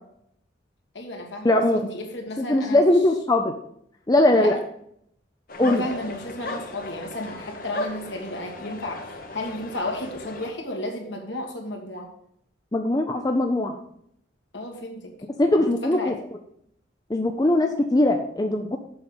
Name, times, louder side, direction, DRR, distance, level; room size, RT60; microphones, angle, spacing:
voice 1, 0.9-2.8 4.4-4.5 5.6-12.1 14.5-15.1 15.5-16.2, left 1 dB, 65° left, 2 dB, 1.8 m, -33 dB
voice 2, 1.4-1.8 2.4-3.5 4.1-4.6 5.6-5.8 12.7-13.8 15.4-16.2 17.1-18.8, left 1 dB, 20° left, 4 dB, 0.5 m, -20 dB
sound 1, 5.5-10.5, left 1 dB, 45° left, 1.0 m, -36 dB
6.9 x 5.3 x 7.1 m, 0.71 s
head